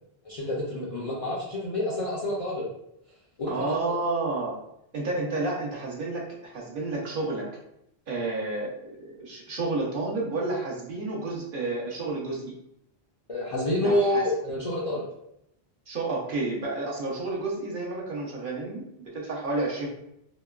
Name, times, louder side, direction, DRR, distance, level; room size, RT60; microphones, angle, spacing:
voice 1, 0.2-2.7 3.4-4.0 13.3-15.1, left 1 dB, 45° left, -6 dB, 0.5 m, -28 dB
voice 2, 3.5-4.6 4.9-6.3 6.5-7.5 8.1-8.7 9.0-12.5 13.8-14.2 15.9-19.9, right 3 dB, 60° right, -3 dB, 0.8 m, -30 dB
2.9 x 2.1 x 2.2 m, 0.78 s
omnidirectional pair, 1.1 m